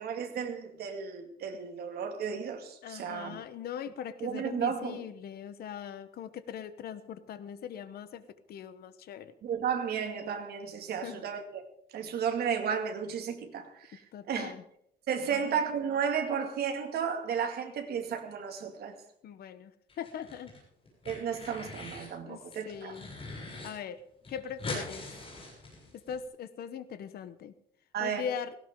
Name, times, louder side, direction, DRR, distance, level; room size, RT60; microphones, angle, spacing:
voice 1, 0.0-3.4 4.2-5.0 9.4-11.6 11.9-14.0 14.3-14.5 15.1-19.0 21.0-22.9 27.9-28.2, right 7 dB, 65° right, 2.3 m, -33 dB
voice 2, 2.8-9.3 11.0-11.2 14.1-14.6 15.3-15.6 19.2-20.5 21.2-21.4 22.2-23.1 23.6-24.0 24.3-25.1 25.9-27.5 28.0-28.6, left 8 dB, 60° left, 1.0 m, -41 dB
sound 1, 19.9-20.6 20.9-22.1 22.5-23.7 24.0-24.1 24.2-26.2, left 2 dB, 30° left, 7.5 m, -41 dB
18.0 x 16.5 x 3.8 m
cardioid pair, 175°, 18 cm